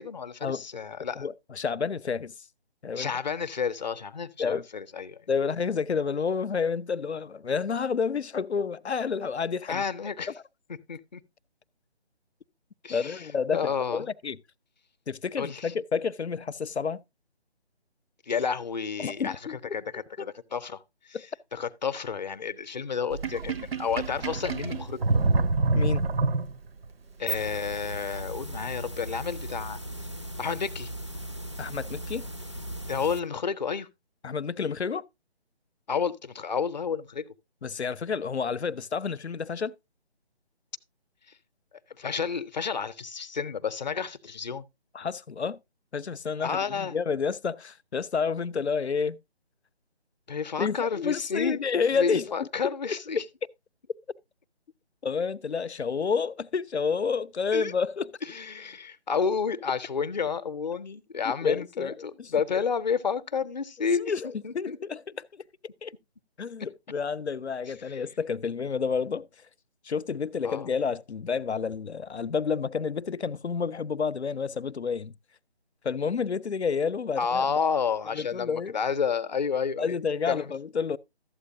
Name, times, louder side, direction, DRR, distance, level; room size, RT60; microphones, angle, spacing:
voice 1, 0.0-1.3 2.9-5.2 9.7-10.3 10.9-11.2 12.8-13.2 13.5-14.1 15.4-15.7 18.3-19.3 19.7-20.8 21.5-25.0 27.2-29.8 30.4-30.9 32.9-33.9 35.9-37.3 42.0-44.6 46.4-46.9 50.3-51.6 51.9-53.2 57.5-57.7 58.2-64.1 64.4-64.8 67.9-68.0 70.4-70.7 77.2-80.0 80.3-80.5, left 6 dB, 40° left, 0.6 m, -30 dB
voice 2, 1.2-2.3 2.8-3.1 4.4-4.6 5.3-9.8 12.9-14.4 15.1-17.0 19.0-19.8 20.2-20.3 21.1-21.2 25.7-26.0 31.6-32.3 34.2-35.0 37.6-39.7 44.9-45.6 45.9-49.2 50.6-52.5 52.9-53.2 55.0-58.2 61.2-62.3 64.0-65.4 65.8-65.9 66.4-69.3 69.8-75.1 75.8-77.5 78.1-78.8 79.8-81.0, left 5 dB, 85° left, 0.6 m, -30 dB
Sink (filling or washing), 23.1-26.9, right 3 dB, 65° right, 0.7 m, -27 dB
sound 1, 27.0-33.2, right 1 dB, 30° right, 0.4 m, -37 dB
12.5 x 7.9 x 2.6 m
figure-of-eight pair, 150°, 32 cm